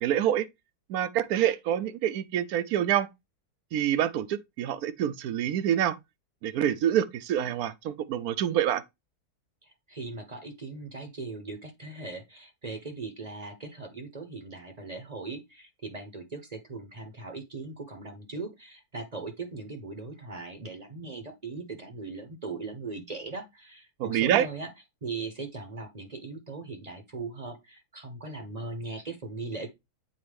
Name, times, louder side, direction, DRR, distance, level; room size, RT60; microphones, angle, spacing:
voice 1, 0.0-0.5 0.9-3.1 3.7-6.0 6.4-8.8 24.0-24.5, right 10 dB, 75° right, 1.0 m, -26 dB
voice 2, 9.6-24.7 25.0-29.7, right 3 dB, 30° right, 0.8 m, -39 dB
7.8 x 4.2 x 3.4 m
omnidirectional pair, 1.6 m